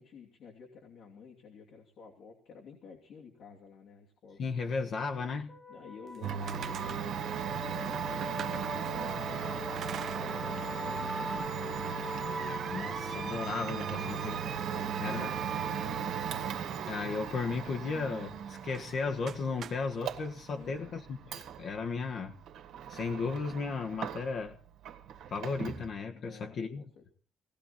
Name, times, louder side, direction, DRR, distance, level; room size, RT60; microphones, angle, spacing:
voice 1, 0.0-4.4 5.7-12.1 14.5-16.2 20.5-21.0 26.1-27.1, left 5 dB, 75° left, 2.9 m, -52 dB
voice 2, 4.4-5.5 12.7-14.7 15.0-15.3 16.9-22.4 22.9-24.6 25.3-26.8, left 4 dB, 60° left, 1.4 m, -35 dB
sound 1, 5.5-20.8, left 1 dB, 25° left, 1.5 m, -43 dB
sound 2, 6.1-9.2 9.8-10.8 11.1-11.2 11.8-16.5 18.7-18.9 19.3-20.2, right 9 dB, 65° right, 0.7 m, -45 dB
Domestic sounds home sounds, 6.2-24.5 24.8-25.9, right 8 dB, 85° right, 1.9 m, -38 dB
18.5 x 17.0 x 4.3 m
cardioid pair, 90°, 0 cm